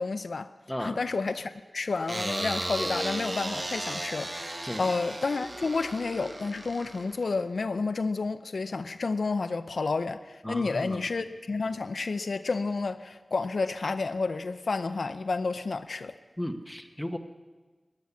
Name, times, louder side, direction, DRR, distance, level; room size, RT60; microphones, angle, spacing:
voice 1, 0.0-0.5 0.8-16.2, left 4 dB, 85° left, 10 dB, 0.6 m, -30 dB
voice 2, 0.7-1.0 4.6-4.9 10.4-11.0 16.4-17.2, equal, 5° left, 6 dB, 1.2 m, -35 dB
sound 1, 2.1-7.4, right 1 dB, 45° right, 1.6 m, -35 dB
16.5 x 10.5 x 7.2 m, 1.3 s
wide cardioid pair, 75°, 0 cm